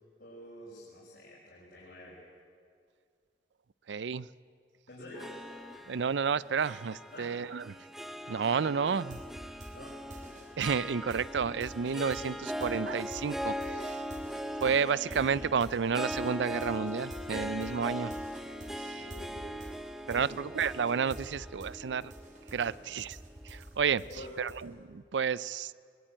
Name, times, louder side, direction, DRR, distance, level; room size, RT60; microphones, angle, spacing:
voice 1, 0.2-2.2 4.9-5.8 7.1-7.4 9.7-10.0 19.0-19.8 20.1-20.5 22.7-22.8 24.1-24.3, left 1 dB, 65° left, -7 dB, 5.8 m, -48 dB
voice 2, 3.9-4.3 5.9-7.8 8.3-9.2 10.6-14.0 14.6-18.1 18.7-19.0 20.1-22.1 22.5-23.2 23.4-24.0 24.4-25.7, right 6 dB, 90° right, 20 dB, 0.5 m, -31 dB
Harp, 5.1-23.6, equal, ahead, 0.9 m, -40 dB
sound 1, 8.8-21.7 22.0-24.6, right 1 dB, 45° right, 4.0 m, -47 dB
21.0 x 21.0 x 8.8 m, 2.2 s
head